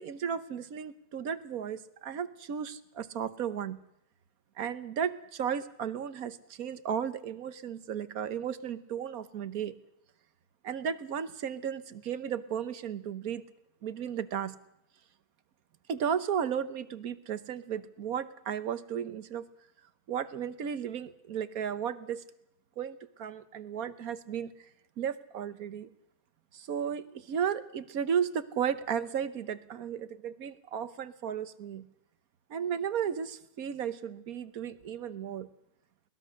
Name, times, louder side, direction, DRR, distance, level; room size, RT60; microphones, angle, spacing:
voice 1, 0.0-3.8 4.6-9.7 10.6-13.4 13.8-14.6 15.9-19.5 20.1-22.2 22.8-24.5 25.0-25.9 26.5-31.9 32.5-35.5, right 8 dB, 70° right, 13 dB, 1.4 m, -34 dB
21.5 x 19.5 x 6.4 m, 0.78 s
omnidirectional pair, 1.6 m